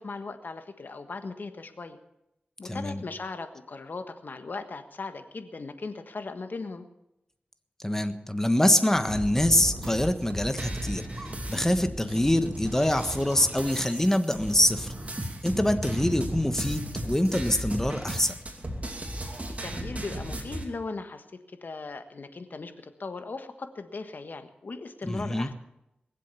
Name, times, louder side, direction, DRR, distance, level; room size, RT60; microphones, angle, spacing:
voice 1, 0.0-2.0 2.6-6.9 19.6-25.5, left 3 dB, 65° left, 8 dB, 1.4 m, -38 dB
voice 2, 2.6-3.0 7.8-14.9 15.4-18.3 25.0-25.5, left 1 dB, 15° left, 9 dB, 1.4 m, -25 dB
sound 1, 9.1-20.6, right 1 dB, 45° right, 2.6 m, -35 dB
21.0 x 7.7 x 7.0 m, 0.86 s
cardioid pair, 50°, 3 cm